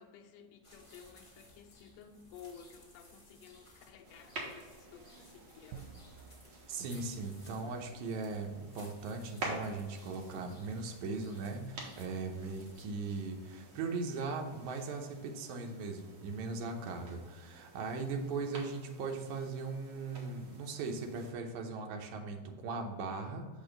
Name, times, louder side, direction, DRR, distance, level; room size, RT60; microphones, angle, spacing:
voice 1, 0.0-6.2, left 7 dB, 85° left, 2 dB, 2.3 m, -54 dB
sound 1, 0.6-12.8, left 1 dB, 25° left, 0.6 m, -60 dB
sound 2, 4.0-21.3, right 2 dB, 55° right, 1.5 m, -50 dB
sound 3, 5.7-8.5, right 7 dB, 90° right, 2.3 m, -54 dB
voice 2, 6.7-23.5, right 4 dB, 70° right, 3 dB, 2.0 m, -39 dB
6.9 x 5.3 x 3.8 m, 1.4 s
omnidirectional pair, 3.9 m